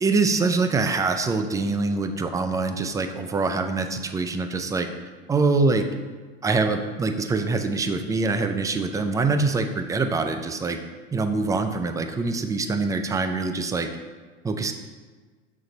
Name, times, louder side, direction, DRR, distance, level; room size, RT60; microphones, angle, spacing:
voice 1, 0.0-4.9 5.3-5.9 6.4-10.8 11.1-13.9 14.4-14.7, right 3 dB, 10° right, 7 dB, 0.4 m, -24 dB
7.2 x 3.8 x 4.1 m, 1.4 s
supercardioid pair, 105°, 33 cm